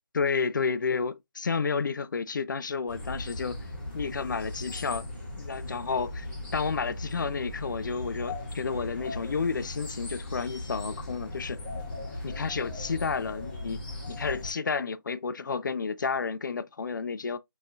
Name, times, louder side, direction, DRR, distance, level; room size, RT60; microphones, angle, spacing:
voice 1, 0.1-3.6 3.9-5.1 5.4-6.3 6.5-11.6 12.2-13.8 14.1-17.4, left 5 dB, 60° left, 0.4 m, -31 dB
sound 1, 2.9-14.5, left 1 dB, 25° left, 1.7 m, -38 dB
4.3 x 3.1 x 2.5 m
hypercardioid pair, 170°, 12 cm